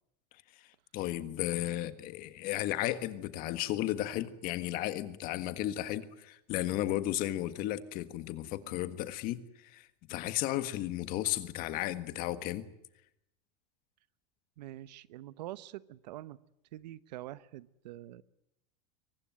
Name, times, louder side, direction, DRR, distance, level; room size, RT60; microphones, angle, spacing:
voice 1, 0.9-12.6, left 14 dB, 45° left, 1.6 m, -34 dB
voice 2, 14.6-16.4 16.7-18.2, right 15 dB, 85° right, 1.0 m, -45 dB
23.5 x 20.0 x 9.3 m
supercardioid pair, 155°, 21 cm